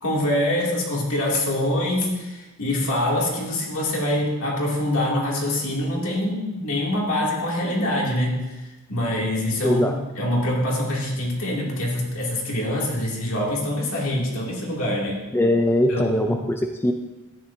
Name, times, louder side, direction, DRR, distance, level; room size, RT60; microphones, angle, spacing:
voice 1, 0.0-15.2 15.9-16.4, left 1 dB, 65° left, -3 dB, 2.7 m, -25 dB
voice 2, 9.6-9.9 15.3-16.9, left 1 dB, 10° left, 3 dB, 0.5 m, -21 dB
13.5 x 9.6 x 2.8 m, 1.1 s
head